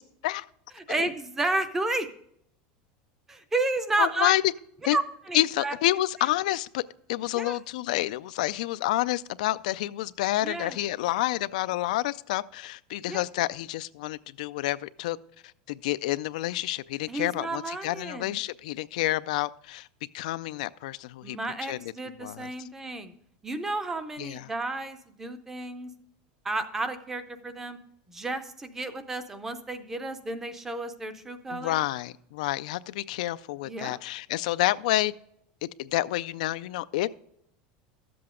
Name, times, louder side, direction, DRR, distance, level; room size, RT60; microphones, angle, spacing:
voice 1, 0.9-2.1 3.3-4.3 4.9-5.8 7.3-7.6 10.4-10.8 13.1-13.2 17.1-18.3 21.2-23.1 23.4-25.9 26.4-27.8 28.1-31.8 33.6-34.0, right 2 dB, 10° right, 0.5 m, -32 dB
voice 2, 4.0-4.4 4.9-5.0 5.3-6.8 7.1-15.2 15.7-19.9 20.1-21.8 22.2-22.5 24.2-24.5 31.5-35.1 35.6-37.1, left 16 dB, 75° left, 0.3 m, -29 dB
12.5 x 7.7 x 3.7 m
supercardioid pair, 180°, 4 cm